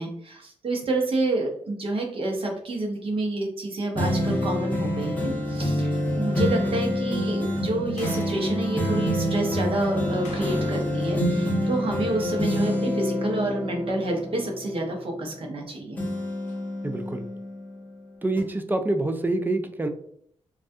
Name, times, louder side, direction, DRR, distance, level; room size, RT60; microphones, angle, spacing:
voice 1, 0.0-16.0, right 2 dB, 50° right, 1 dB, 0.7 m, -29 dB
sound 1, 3.9-15.6 16.0-17.9 18.4-18.5, equal, 15° left, 0.7 m, -27 dB
sound 2, 8.0-8.4 10.2-11.1 11.4-11.5 16.5-16.6, left 3 dB, 85° left, 0.5 m, -42 dB
voice 2, 16.8-17.2 18.2-19.9, right 2 dB, 15° right, 6 dB, 0.3 m, -26 dB
2.3 x 2.2 x 2.6 m, 0.65 s
cardioid pair, 65°, 12 cm